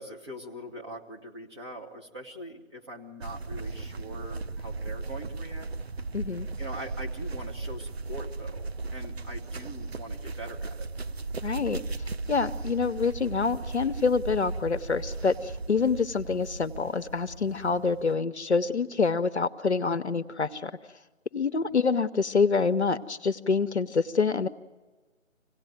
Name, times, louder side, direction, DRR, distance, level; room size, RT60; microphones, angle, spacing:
voice 1, 0.0-5.7 6.6-10.9 21.6-21.8, right 1 dB, 20° right, -1 dB, 1.4 m, -42 dB
sound 1, 3.2-18.2, right 3 dB, 50° right, 0.7 m, -36 dB
voice 2, 6.1-6.5 11.4-11.8 12.3-20.7 21.3-24.5, left 4 dB, 55° left, 10 dB, 0.9 m, -26 dB
26.0 x 17.5 x 9.2 m, 1.3 s
figure-of-eight pair, 165°, 39 cm